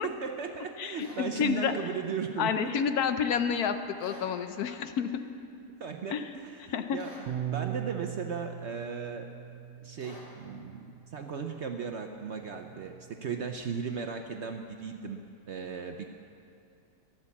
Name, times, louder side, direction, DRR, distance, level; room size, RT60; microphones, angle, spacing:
voice 1, 0.0-2.7 5.8-9.3 9.8-12.9 13.2-15.2 15.5-16.1, right 6 dB, 55° right, 5 dB, 0.8 m, -36 dB
voice 2, 0.8-1.7 2.4-5.2 6.1-6.2 6.6-7.0, left 7 dB, 70° left, 9 dB, 1.2 m, -29 dB
sound 1, 1.0-1.2 4.0-4.3 7.0-7.3 10.0-10.3, left 1 dB, 40° left, 3.3 m, -49 dB
Bass guitar, 7.3-13.5, right 11 dB, 85° right, 1.3 m, -41 dB
14.0 x 10.5 x 7.2 m, 2.5 s
omnidirectional pair, 1.7 m